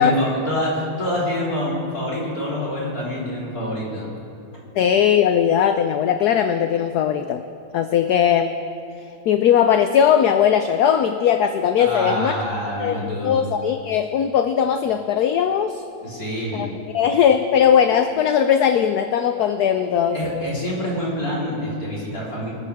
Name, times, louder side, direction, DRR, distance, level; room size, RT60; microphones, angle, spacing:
voice 1, 0.0-4.1 11.8-13.3 16.0-16.7 20.1-22.5, equal, 45° left, -7 dB, 4.5 m, -26 dB
voice 2, 4.8-7.4 7.7-8.5 9.3-12.4 12.8-15.8 16.5-16.7 16.9-20.2, left 8 dB, 70° left, 8 dB, 1.0 m, -19 dB
25.0 x 14.0 x 3.5 m, 2.8 s
omnidirectional pair, 2.1 m